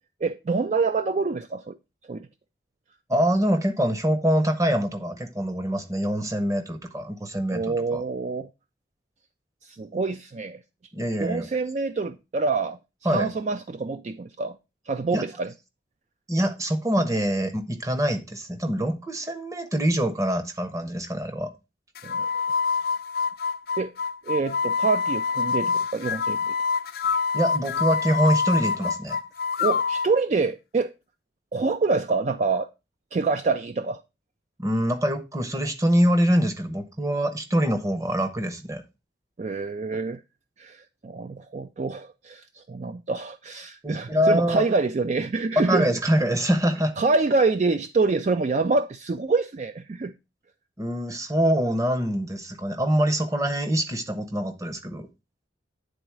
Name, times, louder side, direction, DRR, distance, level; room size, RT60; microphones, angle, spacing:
voice 1, 0.2-1.8 2.1-2.3 7.5-8.5 9.6-10.6 11.2-14.6 14.9-15.5 22.0-22.3 23.8-23.9 24.2-26.5 29.6-30.9 31.5-32.7 33.1-34.0 39.4-40.2 40.6-45.9 47.0-50.1, right 3 dB, 40° right, 0.3 m, -26 dB
voice 2, 3.1-8.0 10.9-11.5 13.0-13.3 15.1-15.2 16.3-21.5 27.3-29.2 34.6-38.8 43.8-44.7 45.6-46.9 50.8-55.1, equal, 20° right, 0.8 m, -24 dB
sound 1, 22.0-30.1, left 5 dB, 55° left, 0.4 m, -26 dB
9.4 x 4.0 x 4.6 m
head